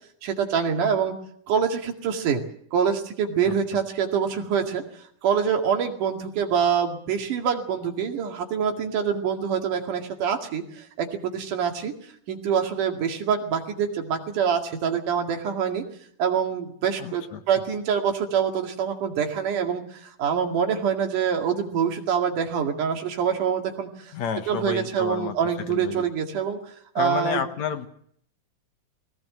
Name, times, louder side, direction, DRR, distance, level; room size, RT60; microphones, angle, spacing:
voice 1, 0.2-1.2 1.5-2.4 2.7-4.8 5.2-11.9 12.3-15.8 16.2-24.1 24.5-26.6 27.0-27.4, right 7 dB, 85° right, 3 dB, 3.8 m, -25 dB
voice 2, 3.4-3.8 17.0-17.4 24.1-26.0 27.0-27.9, left 7 dB, 65° left, 8 dB, 2.5 m, -31 dB
21.5 x 18.0 x 7.6 m, 0.66 s
omnidirectional pair, 3.6 m